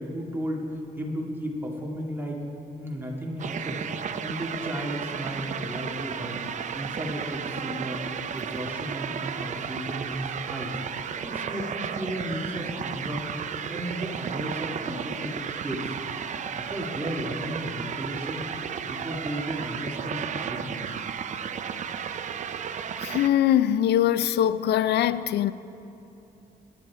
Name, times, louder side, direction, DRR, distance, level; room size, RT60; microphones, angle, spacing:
voice 1, 0.0-2.4 2.8-3.9 4.2-6.4 6.7-8.0 8.3-10.8 11.2-13.3 13.7-15.9 16.5-18.5 18.9-21.0, equal, 10° right, 1.9 m, -34 dB
sound 1, 3.4-23.3, right 7 dB, 45° right, 0.5 m, -33 dB
voice 2, 23.0-25.5, left 11 dB, 85° left, 0.4 m, -22 dB
21.0 x 10.5 x 4.6 m
wide cardioid pair, 160°, 17 cm